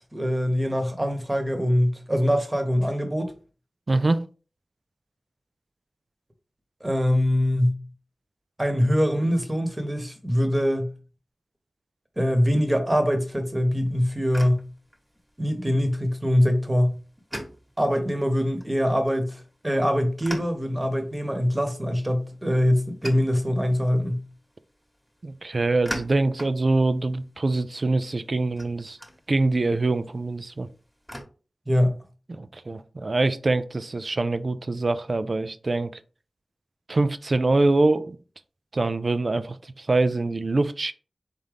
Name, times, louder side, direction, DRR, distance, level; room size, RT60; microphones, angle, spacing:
voice 1, 0.1-3.3 6.8-7.8 8.6-10.9 12.2-14.6 15.4-17.0 17.8-24.2 31.7-32.0, equal, 20° right, 1.2 m, -23 dB
voice 2, 3.9-4.2 25.2-29.0 29.3-30.7 32.3-35.9 36.9-38.2 38.7-40.9, right 2 dB, 50° right, 0.4 m, -24 dB
sound 1, 13.7-31.2, equal, ahead, 1.3 m, -44 dB
4.1 x 3.7 x 3.4 m
wide cardioid pair, 55°, 0 cm